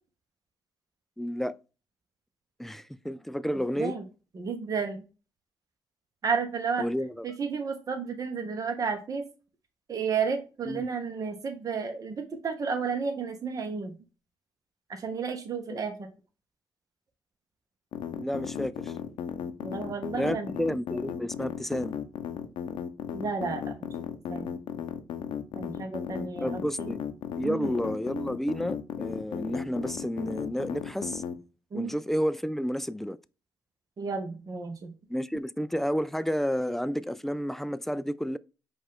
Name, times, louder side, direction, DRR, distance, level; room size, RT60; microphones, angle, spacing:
voice 1, 1.2-1.5 2.6-4.0 6.8-7.3 10.7-10.9 15.7-15.8 18.2-18.9 20.2-22.0 26.4-27.0 27.4-31.2 31.7-33.2 35.1-38.4, equal, 5° left, 0.3 m, -31 dB
voice 2, 4.3-5.0 6.2-6.9 7.2-9.2 9.9-13.9 14.9-15.9 19.6-20.5 23.1-23.9 24.3-24.5 25.5-26.9 27.4-27.7 31.7-31.9 34.0-34.9, right 5 dB, 45° right, 0.9 m, -32 dB
sound 1, 17.9-31.3, left 8 dB, 75° left, 0.6 m, -35 dB
5.0 x 2.5 x 3.6 m
supercardioid pair, 65°, 8 cm